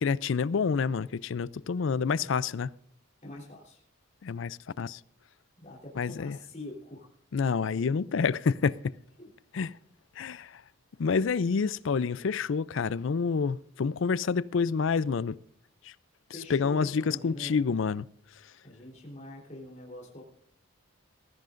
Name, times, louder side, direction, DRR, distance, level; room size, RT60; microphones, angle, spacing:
voice 1, 0.0-2.7 4.2-5.0 6.0-6.4 7.3-8.9 9.5-9.7 10.2-10.5 11.0-15.4 16.5-18.1, left 5 dB, 60° left, 0.4 m, -28 dB
voice 2, 3.2-3.8 5.6-7.1 9.2-9.3 16.3-17.6 18.6-20.2, left 1 dB, 35° left, 3.5 m, -44 dB
19.5 x 15.5 x 2.5 m
head